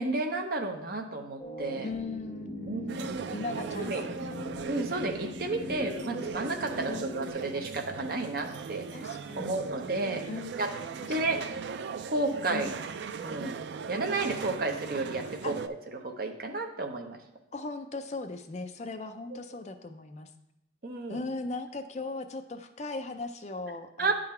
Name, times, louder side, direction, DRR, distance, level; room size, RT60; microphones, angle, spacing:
voice 1, 0.0-1.9 2.6-3.1 3.8-4.0 4.7-9.0 9.4-10.2 10.6-10.7 11.1-11.4 12.1-12.7 13.2-13.6 13.9-15.7 16.0-17.2 20.8-21.2 24.0-24.1, right 2 dB, 50° right, 4 dB, 0.7 m, -32 dB
sound 1, 1.4-7.3, left 1 dB, 10° left, 2.4 m, -41 dB
voice 2, 1.8-3.0 3.3-4.6 6.9-7.1 8.9-9.6 10.3-10.5 11.0-11.4 12.5-12.7 15.4-15.5 17.5-20.3 21.1-24.1, left 3 dB, 35° left, 8 dB, 0.4 m, -38 dB
sound 2, 2.9-15.7, right 6 dB, 65° right, 0.3 m, -39 dB
10.0 x 3.9 x 4.3 m, 0.84 s
head